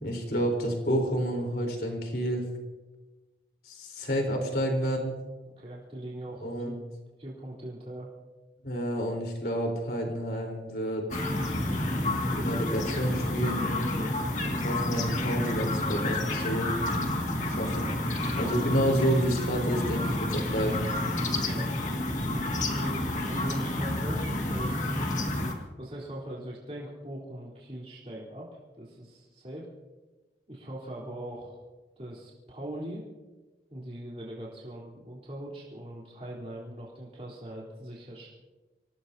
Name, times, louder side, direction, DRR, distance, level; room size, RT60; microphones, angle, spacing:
voice 1, 0.0-2.5 3.6-5.2 6.4-6.8 8.6-11.2 12.3-13.7 14.4-16.7 17.5-17.9 18.4-20.8, equal, 60° left, 1 dB, 4.0 m, -29 dB
voice 2, 5.5-6.7 7.2-8.1 21.2-21.7 22.6-25.0 25.8-28.5 28.7-29.7 30.5-31.6 32.0-33.0 33.7-38.3, right 1 dB, 35° right, -5 dB, 3.7 m, -41 dB
sound 1, 11.1-25.5, left 1 dB, 45° left, 2.1 m, -29 dB
27.0 x 18.0 x 2.8 m, 1.2 s
head